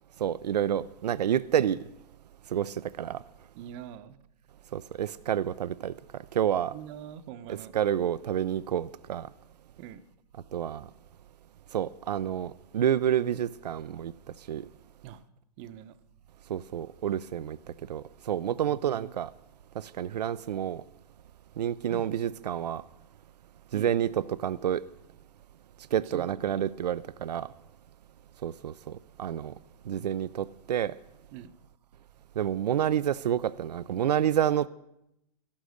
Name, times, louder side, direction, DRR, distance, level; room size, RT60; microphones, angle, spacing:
voice 1, 0.2-1.8 2.5-3.2 4.7-5.9 6.3-6.7 7.7-9.3 10.5-10.9 11.7-14.1 14.5-14.7 16.5-17.6 17.9-19.3 19.8-20.8 21.6-22.8 23.7-24.8 25.9-27.5 28.4-29.5 29.9-30.9 32.4-34.7, right 10 dB, 85° right, 17 dB, 0.5 m, -29 dB
voice 2, 3.6-4.2 6.7-7.7 9.8-10.0 15.0-15.2 15.6-15.9 18.7-19.1 21.9-22.1 23.7-23.9 26.1-26.7 31.3-31.5, right 10 dB, 40° right, 12 dB, 0.8 m, -44 dB
13.5 x 11.5 x 6.4 m, 0.85 s
hypercardioid pair, 125°, 20 cm